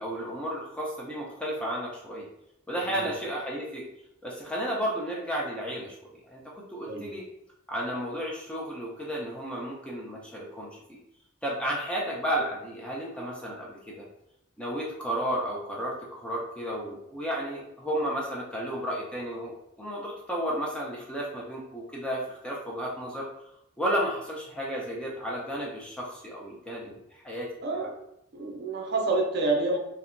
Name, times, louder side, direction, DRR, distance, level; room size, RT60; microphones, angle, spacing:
voice 1, 0.0-2.3 2.7-3.8 4.2-7.2 7.7-11.0 11.4-14.0 14.6-23.3 23.8-27.5, equal, 5° left, -4 dB, 0.4 m, -33 dB
voice 2, 27.6-28.0 28.3-29.8, right 2 dB, 50° right, 0 dB, 0.5 m, -28 dB
2.7 x 2.1 x 2.5 m, 0.82 s
head